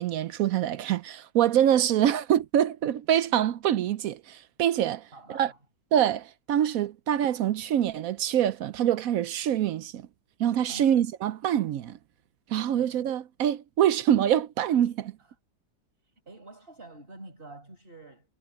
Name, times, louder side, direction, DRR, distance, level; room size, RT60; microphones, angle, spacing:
voice 1, 0.0-5.0 5.3-5.5 5.9-10.1 10.4-12.0 12.5-15.1, right 10 dB, 70° right, 0.9 m, -25 dB
voice 2, 5.1-5.6 6.6-6.7 10.7-11.0 12.7-13.0 15.2-15.3 16.3-18.3, right 2 dB, 30° right, 5.4 m, -47 dB
omnidirectional pair, 1.8 m